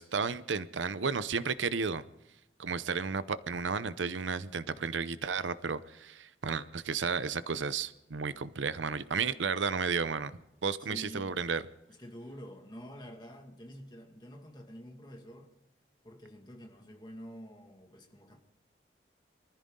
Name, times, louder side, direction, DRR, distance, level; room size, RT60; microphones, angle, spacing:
voice 1, 0.0-2.0 2.6-11.6, right 5 dB, 85° right, 0.7 m, -33 dB
voice 2, 10.8-11.4 11.9-15.5 16.0-18.4, equal, 25° left, 2.0 m, -48 dB
24.0 x 14.5 x 3.8 m
head